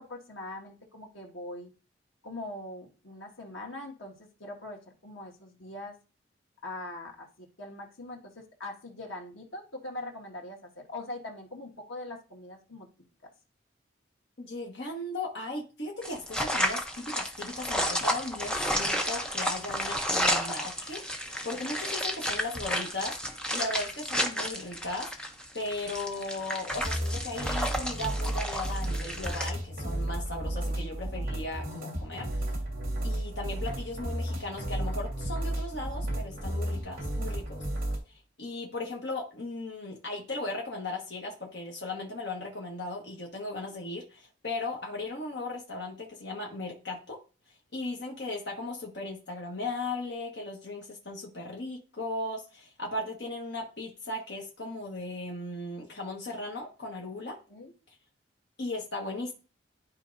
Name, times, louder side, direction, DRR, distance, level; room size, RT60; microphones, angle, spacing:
voice 1, 0.0-1.7 2.2-6.0 6.6-12.9 57.5-57.7, left 2 dB, 90° left, 1 dB, 1.7 m, -42 dB
voice 2, 14.4-25.1 25.5-32.5 33.0-37.6 38.1-47.2 47.7-57.4 58.6-59.3, left 2 dB, 60° left, -1 dB, 1.3 m, -37 dB
sound 1, 16.0-29.5, equal, 5° left, 0.6 m, -32 dB
sound 2, 26.7-38.0, right 1 dB, 50° right, 2.9 m, -33 dB
12.0 x 4.6 x 2.6 m, 0.34 s
head